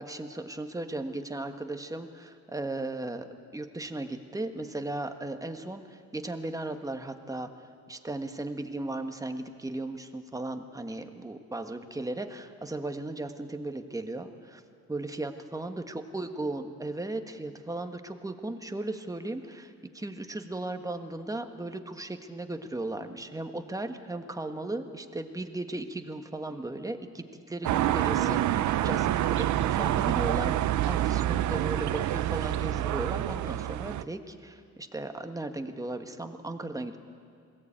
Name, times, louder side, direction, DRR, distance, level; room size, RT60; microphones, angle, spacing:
voice 1, 0.0-3.3 3.5-7.5 7.9-14.6 14.9-37.0, right 2 dB, 10° right, 6 dB, 1.5 m, -36 dB
sound 1, 27.6-34.0, right 13 dB, 70° right, 0.7 m, -27 dB
21.5 x 17.0 x 8.9 m, 2.3 s
cardioid pair, 90°, 30 cm